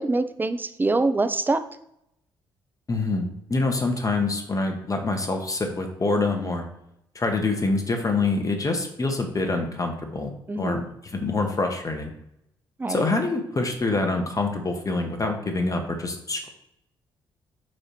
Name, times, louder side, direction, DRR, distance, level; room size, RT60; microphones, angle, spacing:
voice 1, 0.0-1.6 10.5-10.9 12.8-13.0, right 3 dB, 15° right, 10 dB, 0.5 m, -24 dB
voice 2, 2.9-6.7 7.1-12.1 12.9-16.5, left 3 dB, 30° left, 4 dB, 1.2 m, -26 dB
7.7 x 2.8 x 4.3 m, 0.78 s
figure-of-eight pair, 40°, 11 cm